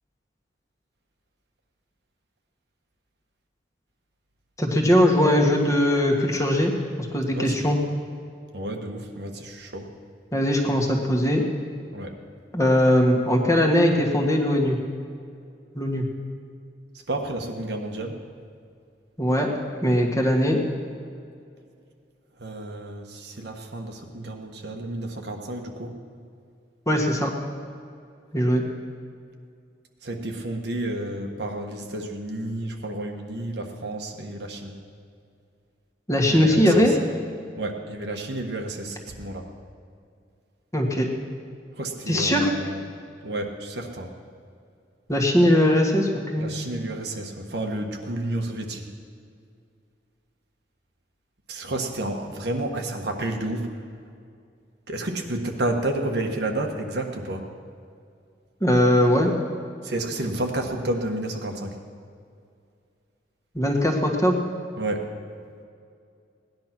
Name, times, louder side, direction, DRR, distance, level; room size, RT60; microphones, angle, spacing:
voice 1, 4.6-6.7 7.1-7.8 10.3-11.4 12.5-14.8 15.7-16.0 19.2-19.5 19.8-20.6 26.9-27.3 28.3-28.6 36.1-37.0 40.7-41.1 42.1-42.5 45.1-46.5 58.6-59.3 63.5-64.4, equal, 15° left, 1 dB, 1.6 m, -20 dB
voice 2, 7.3-7.6 8.5-9.9 11.9-12.1 17.1-18.1 22.4-25.9 30.0-34.7 36.3-37.0 37.6-39.4 41.8-42.8 43.2-44.1 46.4-48.8 51.5-53.6 54.9-57.4 59.8-61.7 64.8-65.1, right 1 dB, 65° right, 3 dB, 1.4 m, -30 dB
17.5 x 11.0 x 6.1 m, 2.4 s
head